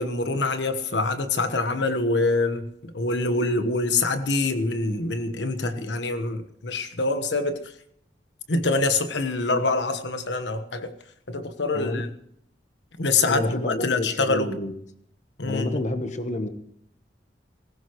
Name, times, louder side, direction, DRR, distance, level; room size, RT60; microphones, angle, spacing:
voice 1, 0.0-7.6 8.5-10.9 11.3-12.1 13.0-14.5 15.4-15.7, left 3 dB, 85° left, 1.3 m, -25 dB
voice 2, 11.7-12.1 13.3-14.8 15.4-16.5, left 1 dB, 45° left, 1.1 m, -29 dB
20.0 x 17.0 x 3.1 m
head